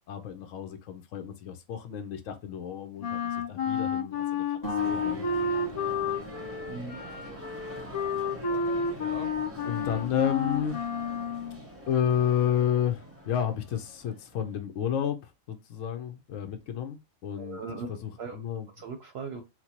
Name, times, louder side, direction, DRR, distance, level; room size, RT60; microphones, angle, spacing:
voice 1, 0.1-5.2 9.0-9.3 9.6-10.9 11.9-17.6 17.9-18.7, left 9 dB, 70° left, 1.0 m, -31 dB
Wind instrument woodwind instrument, 3.0-11.6, left 5 dB, 45° left, 0.5 m, -31 dB
sound 1, 4.6-7.8, left 3 dB, 15° left, 1.1 m, -40 dB
sound 2, 4.8-14.6, equal, 15° right, 0.6 m, -45 dB
voice 2, 6.7-7.0 17.4-17.9 18.2-18.4 18.8-19.4, right 4 dB, 60° right, 0.7 m, -38 dB
4.4 x 2.2 x 2.8 m
omnidirectional pair, 1.4 m